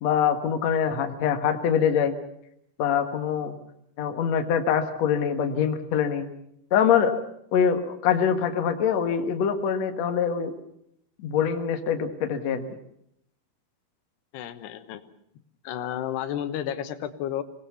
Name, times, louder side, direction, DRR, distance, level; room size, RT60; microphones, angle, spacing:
voice 1, 0.0-2.2 2.8-3.5 4.0-6.3 6.7-7.1 7.5-10.5 11.2-12.6, left 7 dB, 55° left, 6 dB, 2.3 m, -24 dB
voice 2, 14.3-15.0 15.6-17.4, left 10 dB, 90° left, 10 dB, 3.3 m, -32 dB
25.5 x 20.0 x 7.1 m, 0.73 s
omnidirectional pair, 4.6 m